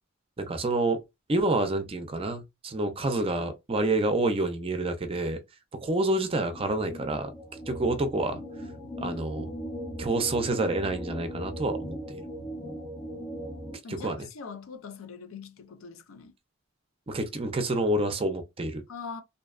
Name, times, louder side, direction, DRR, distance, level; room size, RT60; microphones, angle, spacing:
voice 1, 0.4-1.0 1.3-5.4 5.8-7.3 7.7-8.4 9.0-9.5 10.0-11.9 13.9-14.3 17.1-18.8, right 2 dB, 30° right, 0.5 m, -28 dB
sound 1, 6.4-13.8, equal, 30° left, 0.6 m, -38 dB
voice 2, 13.8-16.3 18.9-19.2, left 5 dB, 85° left, 0.5 m, -42 dB
2.6 x 2.2 x 2.3 m
head